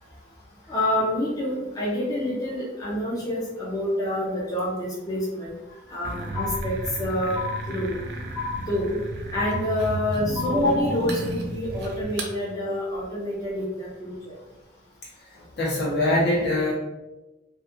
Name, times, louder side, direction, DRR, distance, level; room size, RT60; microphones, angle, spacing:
voice 1, 0.7-5.5 5.9-7.4 7.7-7.9 8.7-9.0 9.3-14.3, left 1 dB, 20° left, -6 dB, 0.4 m, -27 dB
sound 1, 6.0-12.3, right 1 dB, 60° right, 0.4 m, -33 dB
sound 2, 6.3-7.0 7.3-8.0 8.3-9.0 9.3-10.0 10.3-11.0, left 4 dB, 45° left, 1.1 m, -33 dB
voice 2, 15.3-16.7, left 1 dB, 60° left, -5 dB, 0.9 m, -24 dB
2.5 x 2.5 x 2.5 m, 1.1 s
head